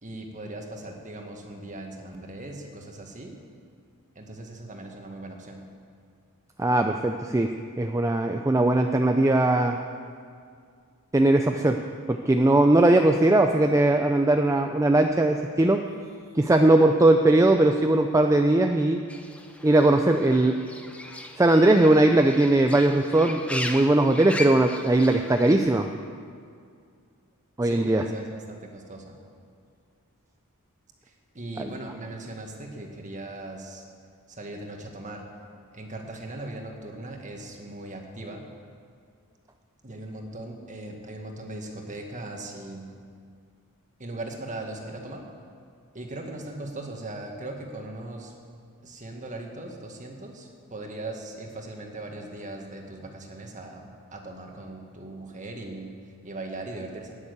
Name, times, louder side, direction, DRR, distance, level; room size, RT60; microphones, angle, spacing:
voice 1, 0.0-3.3 4.2-5.6 27.6-29.2 31.0-33.9 34.3-35.3 35.7-38.4 39.8-42.9 44.0-45.2 45.9-48.3 48.8-57.2, right 2 dB, 35° right, 2 dB, 1.7 m, -39 dB
voice 2, 6.6-7.5 7.8-9.8 11.1-11.8 12.1-15.8 16.4-19.0 19.6-20.6 21.4-25.9 27.6-28.0, right 2 dB, 15° right, 5 dB, 0.4 m, -20 dB
Fowl / Bird, 19.1-25.5, left 1 dB, 5° left, 0.8 m, -38 dB
11.5 x 10.0 x 8.2 m, 2.2 s
head